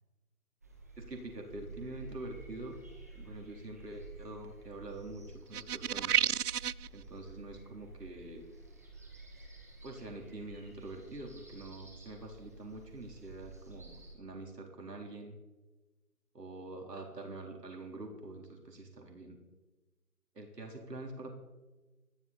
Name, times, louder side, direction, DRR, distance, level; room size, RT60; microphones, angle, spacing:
sound 1, 0.6-14.1, right 2 dB, 10° right, 1.1 m, -51 dB
voice 1, 1.0-2.8 3.1-5.2 5.5-6.2 6.9-8.5 9.8-15.4 16.3-19.4 20.4-21.3, right 2 dB, 85° right, 2 dB, 3.9 m, -45 dB
sound 2, 5.5-6.9, right 9 dB, 70° right, 0.5 m, -30 dB
20.0 x 14.0 x 4.3 m, 1.2 s
hypercardioid pair, 170°, 47 cm